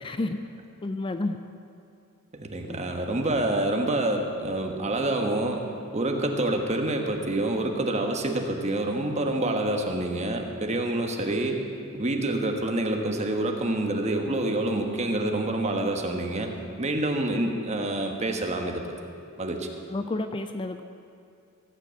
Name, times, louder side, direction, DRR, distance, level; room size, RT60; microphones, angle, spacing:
voice 1, 0.0-0.4 0.8-1.4 2.6-2.8 19.9-20.8, left 2 dB, 25° left, 8 dB, 0.4 m, -30 dB
voice 2, 2.3-5.7 5.9-11.6 11.9-16.5 16.8-18.8 19.4-19.7, right 1 dB, 30° right, 3 dB, 1.2 m, -27 dB
16.0 x 6.0 x 8.2 m, 2.6 s
head